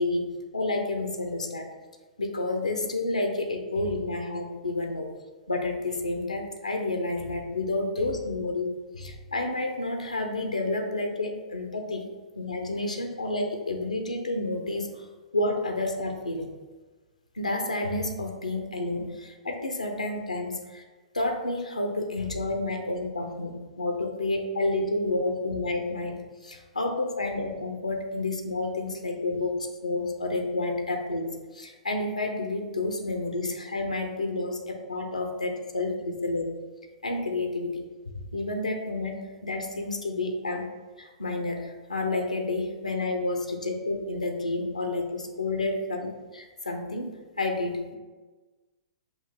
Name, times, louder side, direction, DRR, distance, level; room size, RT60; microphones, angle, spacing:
voice 1, 0.0-1.7 2.2-5.1 5.5-12.0 12.4-15.0 15.3-16.5 17.4-20.8 21.1-36.5 37.0-37.8 38.1-40.7 41.0-48.0, left 2 dB, 85° left, 3 dB, 0.6 m, -30 dB
5.5 x 2.5 x 3.8 m, 1.3 s
figure-of-eight pair, 110°, 4 cm